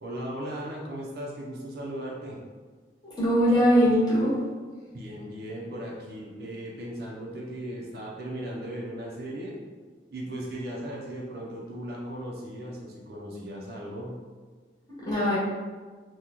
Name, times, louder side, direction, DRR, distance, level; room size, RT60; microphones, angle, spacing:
voice 1, 0.0-2.4 4.9-9.5 10.1-14.2, right 1 dB, 55° right, -3 dB, 0.6 m, -37 dB
voice 2, 3.2-4.3 15.0-15.4, equal, 20° left, -9 dB, 1.1 m, -21 dB
2.9 x 2.3 x 3.7 m, 1.5 s
head